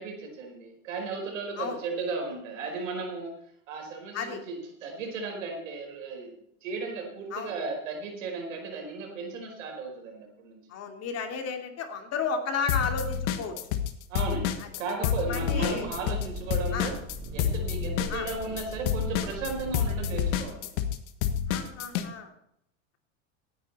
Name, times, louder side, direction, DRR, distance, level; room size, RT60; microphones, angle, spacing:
voice 1, 0.0-3.3 3.7-6.3 6.6-10.6 14.1-17.0 17.3-20.7, right 4 dB, 90° right, 2 dB, 5.1 m, -35 dB
voice 2, 10.7-13.5 14.6-14.7 15.0-15.9 16.7-16.9 18.1-18.3 21.5-22.3, left 5 dB, 40° left, 4 dB, 2.7 m, -33 dB
sound 1, 12.7-13.9 14.2-22.1, left 8 dB, 70° left, 1.6 m, -28 dB
sound 2, 15.4-20.4, right 1 dB, 30° right, 4.0 m, -40 dB
17.0 x 10.0 x 4.3 m, 0.75 s
supercardioid pair, 115°, 38 cm